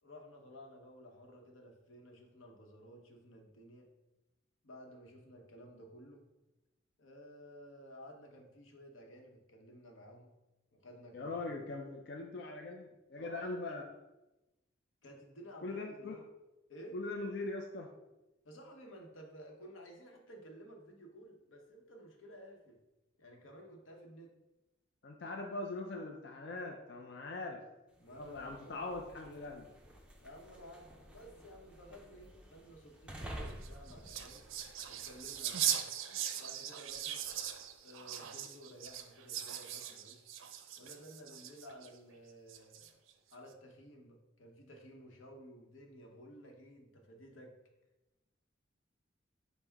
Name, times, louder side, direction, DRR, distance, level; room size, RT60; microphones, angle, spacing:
voice 1, 0.0-3.9 4.6-6.2 7.0-10.3 10.7-11.6 13.2-13.9 15.0-16.2 16.7-17.0 18.4-22.8 23.2-24.3 28.0-29.0 30.2-34.5 34.9-35.9 36.4-37.2 37.8-40.3 40.8-43.0 43.3-47.5, equal, 90° left, 2 dB, 0.8 m, -54 dB
voice 2, 11.1-13.8 15.6-16.2 16.9-17.9 25.0-27.6 28.2-29.7, left 2 dB, 55° left, 1 dB, 0.4 m, -41 dB
sound 1, 27.9-35.8, right 1 dB, 5° right, 0.4 m, -51 dB
sound 2, 33.5-41.9 42.5-43.1, right 10 dB, 90° right, 0.4 m, -39 dB
5.5 x 2.1 x 4.5 m, 1.0 s
head